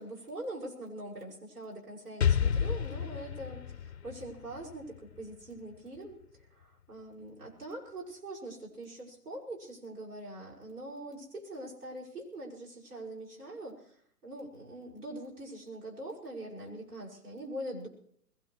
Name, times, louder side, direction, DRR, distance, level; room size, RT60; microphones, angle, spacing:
voice 1, 0.0-6.2 6.5-17.9, right 1 dB, 70° right, -3 dB, 6.1 m, -43 dB
Explosion, 2.2-6.0, left 8 dB, 45° left, 0.5 m, -31 dB
21.5 x 19.0 x 3.2 m, 0.66 s
figure-of-eight pair, 135°, 47 cm